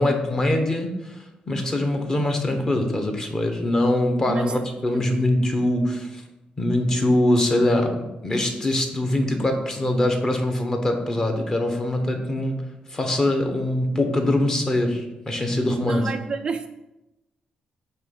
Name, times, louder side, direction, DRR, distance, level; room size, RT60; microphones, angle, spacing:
voice 1, 0.0-6.2 6.6-12.6 12.9-16.1, left 1 dB, 20° left, 0.9 m, -23 dB
voice 2, 15.8-16.7, right 5 dB, 35° right, 0.3 m, -30 dB
8.9 x 3.0 x 5.8 m
wide cardioid pair, 180°, 3 cm